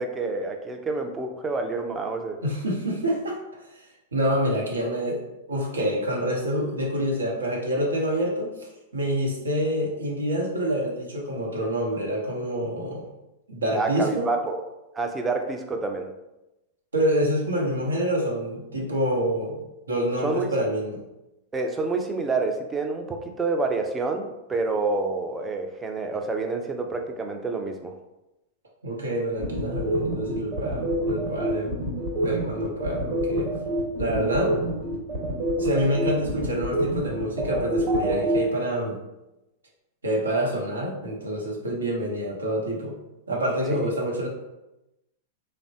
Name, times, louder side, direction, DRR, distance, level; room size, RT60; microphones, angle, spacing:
voice 1, 0.0-2.4 13.7-14.6 14.9-16.1 20.2-20.5 21.5-28.0 43.7-43.9, right 3 dB, 15° right, 3 dB, 0.4 m, -28 dB
voice 2, 2.4-3.8 4.1-5.2 5.5-13.1 13.5-14.3 16.9-19.6 19.9-21.0 28.8-33.5 34.0-34.6 35.6-39.0 40.0-42.9 43.3-44.3, equal, 85° right, -2 dB, 0.8 m, -27 dB
sound 1, 29.4-38.4, right 2 dB, 50° right, 1.1 m, -27 dB
3.1 x 2.1 x 2.7 m, 0.94 s
hypercardioid pair, 105°, 0 cm